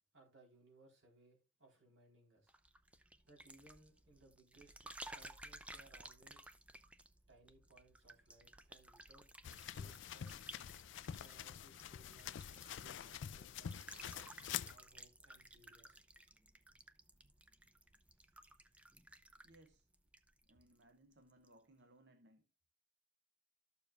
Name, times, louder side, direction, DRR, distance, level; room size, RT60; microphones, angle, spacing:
voice 1, 0.1-2.5 3.2-6.5 7.3-9.3 9.6-10.5 11.2-13.7 14.0-14.4 14.7-16.0, right 2 dB, 80° right, 4.3 m, -66 dB
sound 1, 2.5-20.8 21.1-21.5, right 1 dB, 5° right, 0.4 m, -57 dB
sound 2, 9.4-14.8, left 9 dB, 70° left, 0.4 m, -47 dB
voice 2, 18.0-18.9 19.4-19.9 20.4-22.4, right 1 dB, 60° right, 0.7 m, -67 dB
12.5 x 7.0 x 2.5 m
head